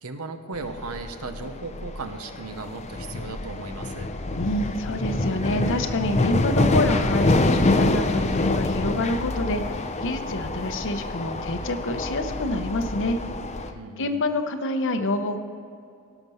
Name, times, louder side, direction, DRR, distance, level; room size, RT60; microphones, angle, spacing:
voice 1, 0.0-4.1 13.7-14.2, right 3 dB, 75° right, 8 dB, 0.9 m, -36 dB
sound 1, 0.5-13.7, left 2 dB, 30° left, 0.6 m, -26 dB
voice 2, 4.3-13.2 14.0-15.4, left 1 dB, 60° left, 7 dB, 0.8 m, -27 dB
17.0 x 6.0 x 5.5 m, 2.4 s
head